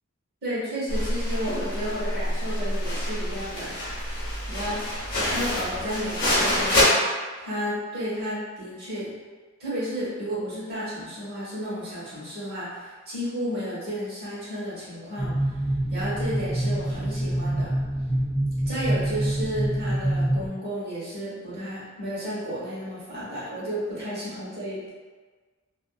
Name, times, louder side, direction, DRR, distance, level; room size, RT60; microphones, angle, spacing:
voice 1, 0.4-3.7 4.5-7.0 7.4-9.1 9.6-15.3 15.9-17.7 18.6-24.9, equal, 50° right, -9 dB, 1.2 m, -32 dB
sound 1, 0.9-6.8, left 1 dB, 45° left, 0.9 m, -27 dB
sound 2, 15.2-20.5, right 1 dB, ahead, 0.4 m, -26 dB
2.5 x 2.5 x 2.3 m, 1.4 s
head